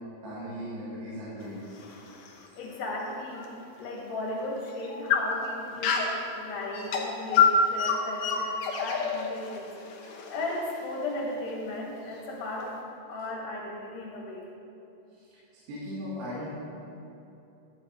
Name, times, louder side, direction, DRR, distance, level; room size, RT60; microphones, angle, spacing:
voice 1, 0.2-1.8 15.2-15.3 15.7-16.5, equal, 70° right, -10 dB, 4.2 m, -37 dB
sound 1, 1.4-3.5 4.0-4.1 4.7-6.2 6.7-11.0, left 5 dB, 85° left, 1.8 m, -28 dB
voice 2, 2.6-3.4 3.8-6.1 6.3-10.0 10.3-12.8 13.1-14.5, left 1 dB, 55° left, -3 dB, 2.8 m, -36 dB
12.5 x 8.8 x 4.6 m, 2.8 s
omnidirectional pair, 5.3 m